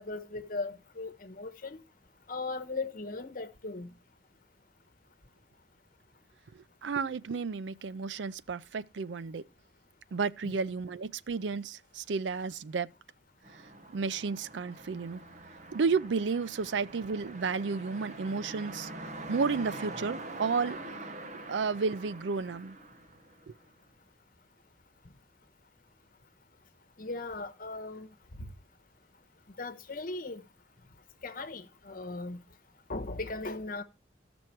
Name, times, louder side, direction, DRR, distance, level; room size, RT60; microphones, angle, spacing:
voice 1, 0.0-1.8 2.3-3.9 10.4-10.6 27.0-28.1 28.4-28.5 29.6-30.4 31.2-32.4 32.9-33.8, left 3 dB, 50° left, 1.1 m, -38 dB
voice 2, 6.8-9.4 10.1-12.9 13.9-15.2 15.7-18.9 19.3-20.8 21.5-22.8 23.5-23.6, right 5 dB, 80° right, 0.5 m, -32 dB
Vehicle Car Passby Exterior Mono, 13.4-23.7, right 2 dB, 40° right, 1.2 m, -44 dB
14.5 x 6.2 x 4.4 m
head